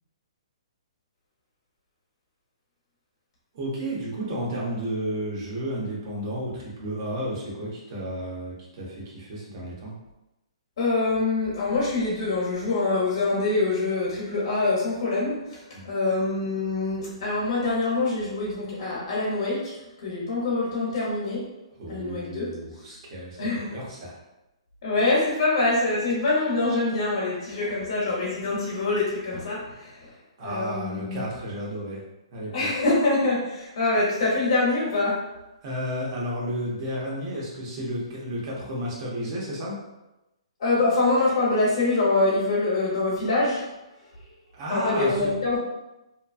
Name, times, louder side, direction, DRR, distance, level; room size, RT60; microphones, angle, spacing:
voice 1, 3.5-10.0 15.7-15.9 21.8-24.2 30.4-32.0 32.3-32.7 35.6-39.8 44.5-45.6, right 1 dB, 45° right, -4 dB, 1.1 m, -32 dB
voice 2, 10.8-21.4 21.9-22.6 23.4-23.7 24.8-30.1 30.4-31.2 32.5-35.2 40.6-43.6 44.7-45.6, left 2 dB, 60° left, -6 dB, 1.0 m, -25 dB
2.9 x 2.3 x 2.4 m, 0.96 s
hypercardioid pair, 145°, 3 cm